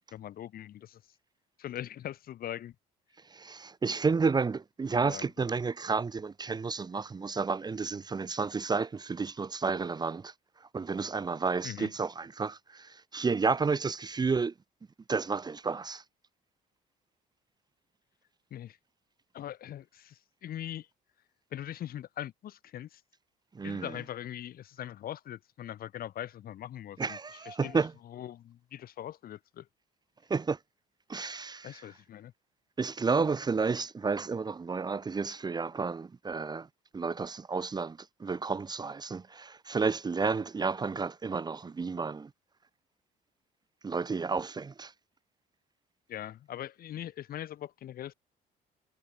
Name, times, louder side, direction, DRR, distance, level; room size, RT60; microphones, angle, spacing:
voice 1, 0.1-1.0 1.6-2.7 4.9-5.5 11.6-11.9 18.5-18.8 19.3-20.9 21.5-23.0 23.6-29.7 31.6-32.3 46.1-48.1, left 11 dB, 60° left, 6.4 m, -41 dB
voice 2, 3.3-10.3 10.7-14.5 15.1-16.0 23.5-23.9 27.0-27.9 30.3-30.6 31.1-31.7 32.8-36.7 36.9-42.3 43.8-44.9, right 4 dB, 25° right, 1.3 m, -31 dB
cardioid pair, 110°, 17 cm